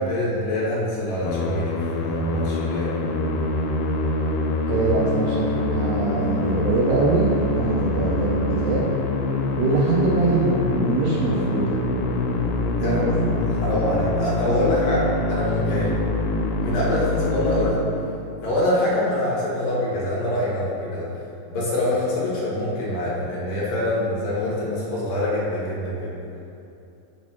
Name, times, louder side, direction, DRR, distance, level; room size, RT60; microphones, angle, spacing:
voice 1, 0.0-2.9 12.8-13.0 13.6-15.9 16.6-17.8 18.4-21.1 21.5-26.1, left 1 dB, 60° left, -7 dB, 2.7 m, -25 dB
Musical instrument, 1.2-18.4, left 2 dB, 90° left, 3.2 m, -25 dB
voice 2, 4.7-8.8 9.6-11.8 12.8-13.3, right 3 dB, 85° right, -5 dB, 3.3 m, -23 dB
7.4 x 4.2 x 6.0 m, 2.7 s
omnidirectional pair, 5.4 m